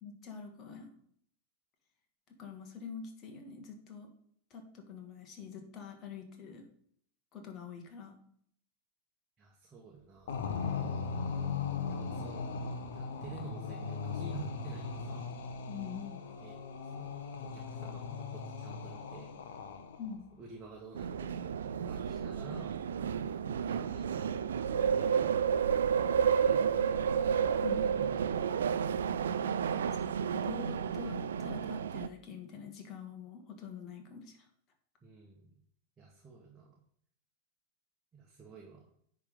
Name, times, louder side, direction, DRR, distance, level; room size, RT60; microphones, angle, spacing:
voice 1, 0.0-1.0 2.3-4.1 4.5-6.6 7.3-8.1 15.7-16.3 20.0-20.2 27.6-27.9 29.8-30.0 30.3-34.5, left 6 dB, 35° left, 4 dB, 1.7 m, -45 dB
voice 2, 9.4-10.5 11.8-12.5 12.9-15.4 16.4-16.6 16.8-19.6 20.4-22.7 23.6-25.2 26.2-27.4 28.0-28.9 35.0-35.5 36.0-36.8 38.1-38.9, right 5 dB, 20° right, -1 dB, 1.4 m, -51 dB
sound 1, 10.3-20.2, left 5 dB, 60° left, 1.0 m, -38 dB
sound 2, 20.9-32.1, right 7 dB, 65° right, 0.4 m, -31 dB
9.7 x 3.6 x 5.4 m, 0.65 s
figure-of-eight pair, 90°, 0 cm